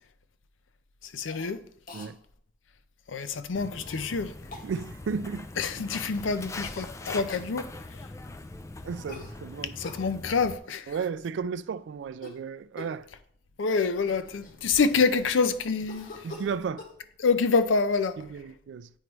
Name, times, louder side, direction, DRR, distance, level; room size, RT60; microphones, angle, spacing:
voice 1, 1.1-1.6 3.1-4.3 5.6-7.7 9.8-10.8 13.6-16.1 17.2-18.2, left 4 dB, 85° left, 0.5 m, -26 dB
Cough, 1.2-1.5 1.9-2.1 3.9-4.0 4.5-4.7 6.6-6.9 7.3-7.5 9.1-10.1 12.1-12.4 12.8-13.0 13.7-13.8 14.0-15.1 15.9-17.0, left 3 dB, 50° left, 0.9 m, -44 dB
Walk footsteps, 3.5-10.6, left 2 dB, 15° left, 0.3 m, -42 dB
voice 2, 4.6-5.5 5.8-6.1 8.8-9.8 10.9-13.1 16.2-16.9 18.2-18.9, right 6 dB, 65° right, 0.3 m, -34 dB
8.9 x 3.1 x 4.6 m
head